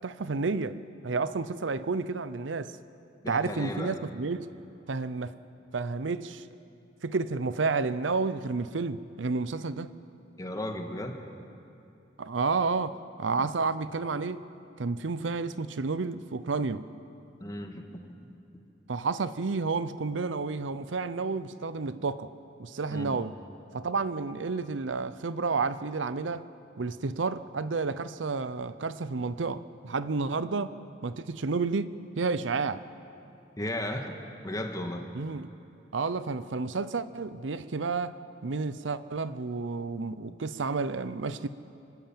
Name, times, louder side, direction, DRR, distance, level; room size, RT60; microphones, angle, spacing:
voice 1, 0.0-2.8 3.3-4.5 4.9-5.3 5.7-6.4 7.0-9.9 12.2-14.4 14.8-16.8 18.9-22.3 22.6-23.3 23.7-26.4 26.8-30.8 31.0-32.8 35.1-35.5 35.9-38.2 38.4-41.5, right 4 dB, 90° right, 14 dB, 0.7 m, -31 dB
voice 2, 3.2-4.0 10.4-11.2 17.4-17.8 22.9-23.2 33.6-34.1 34.4-35.1, left 1 dB, 20° left, 4 dB, 1.6 m, -35 dB
24.5 x 13.0 x 8.8 m, 2.7 s
head